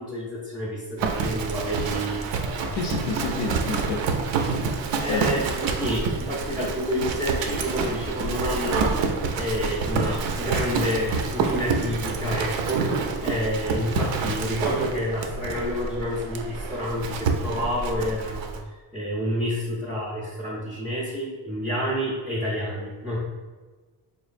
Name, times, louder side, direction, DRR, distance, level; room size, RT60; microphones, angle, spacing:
voice 1, 0.0-2.8 5.0-8.9 9.4-23.2, equal, ahead, -7 dB, 0.4 m, -29 dB
Livestock farm animals working animals, 1.0-18.6, right 4 dB, 80° right, 0.6 m, -28 dB
voice 2, 2.7-4.2 5.1-5.5, left 4 dB, 80° left, 2 dB, 0.5 m, -29 dB
4.3 x 3.0 x 2.5 m, 1.3 s
cardioid pair, 175°, 44 cm